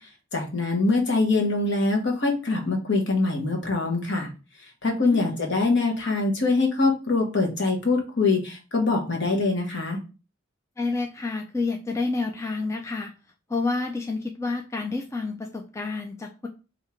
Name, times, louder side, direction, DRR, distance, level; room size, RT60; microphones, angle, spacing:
voice 1, 0.3-4.3 4.8-10.0, left 3 dB, 60° left, 1 dB, 1.2 m, -23 dB
voice 2, 4.9-5.4 10.8-13.1 13.5-16.5, left 3 dB, 15° left, 3 dB, 0.3 m, -29 dB
3.6 x 2.8 x 4.3 m, 0.33 s
head